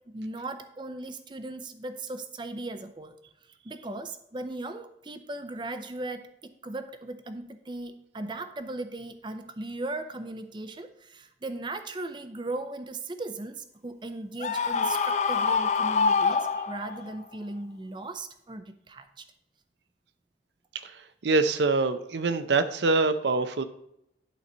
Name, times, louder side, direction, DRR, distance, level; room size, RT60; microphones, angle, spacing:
voice 1, 0.1-19.3, right 2 dB, 25° right, 9 dB, 0.5 m, -38 dB
Screaming, 14.4-17.1, left 5 dB, 40° left, 0.4 m, -25 dB
voice 2, 20.8-23.6, right 3 dB, 85° right, 11 dB, 0.6 m, -25 dB
11.5 x 4.0 x 4.3 m, 0.79 s
head